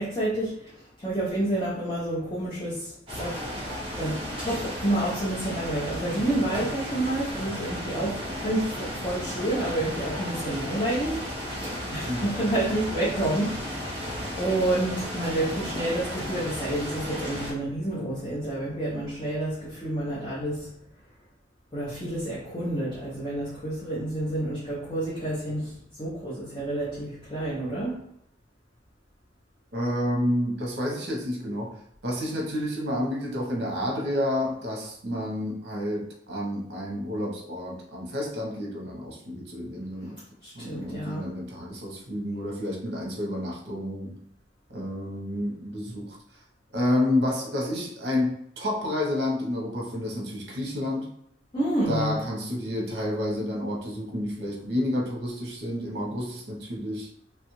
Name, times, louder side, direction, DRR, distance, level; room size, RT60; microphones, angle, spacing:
voice 1, 0.0-20.9 21.7-28.0 40.4-41.3 51.5-52.2, right 1 dB, 25° left, -10 dB, 0.7 m, -29 dB
sound 1, 3.1-17.5, equal, 25° right, 1.0 m, -34 dB
voice 2, 29.7-40.2 40.5-44.2 44.7-46.2 46.7-51.1 51.9-57.1, left 1 dB, 60° right, -2 dB, 0.8 m, -30 dB
3.1 x 2.4 x 3.1 m, 0.74 s
head